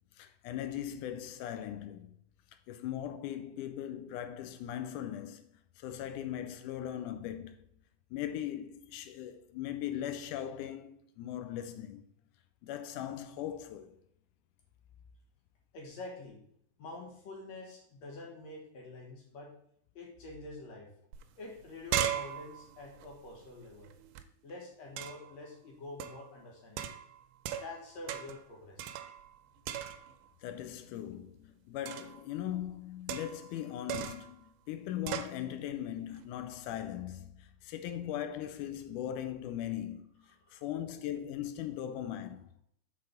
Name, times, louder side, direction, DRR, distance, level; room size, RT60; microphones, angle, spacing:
voice 1, 0.2-2.1 2.7-5.5 5.8-7.6 8.1-12.1 12.6-14.0 30.4-42.5, left 11 dB, 90° left, 2.1 m, -39 dB
voice 2, 15.7-16.4 16.8-19.5 19.9-20.9 21.4-23.9 24.4-26.9 27.6-29.0 40.4-40.6, left 2 dB, 60° left, 2.5 m, -47 dB
sound 1, 21.1-21.2 21.5-24.2 25.0-25.4 26.0-26.3 26.8-27.8 28.1-28.5 28.8-29.4 29.7-30.3 31.9-32.2 33.1-33.5 33.9-34.3 35.1-35.4, right 10 dB, 90° right, 2.2 m, -37 dB
6.3 x 4.3 x 5.1 m
omnidirectional pair, 3.6 m